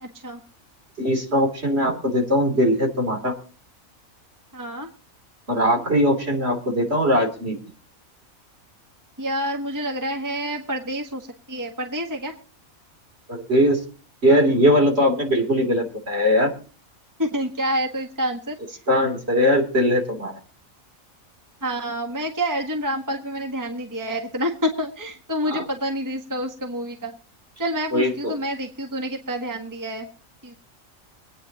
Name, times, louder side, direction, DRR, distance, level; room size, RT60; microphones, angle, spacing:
voice 1, 0.0-0.4 4.5-4.9 9.2-12.3 17.2-18.5 21.6-27.1 27.6-30.1 30.4-30.5, equal, 15° right, 3 dB, 1.5 m, -28 dB
voice 2, 1.0-3.3 5.5-7.6 13.3-13.8 14.2-16.5 18.9-20.3 25.5-25.7 27.9-28.1, equal, 50° right, 3 dB, 3.5 m, -20 dB
25.0 x 9.5 x 2.9 m, 0.39 s
omnidirectional pair, 1.4 m